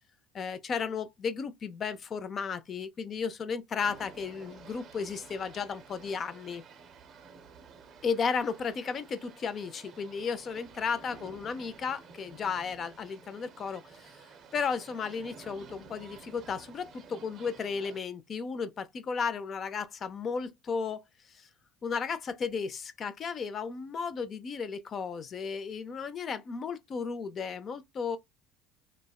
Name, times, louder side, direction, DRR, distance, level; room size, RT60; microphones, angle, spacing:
voice 1, 0.3-6.6 8.0-14.3 14.5-21.0 21.3-21.5 21.8-28.2, left 5 dB, 35° left, 0.5 m, -34 dB
sound 1, 3.8-18.0, right 5 dB, 45° right, 0.6 m, -52 dB
3.4 x 2.1 x 2.3 m
supercardioid pair, 100°, 0 cm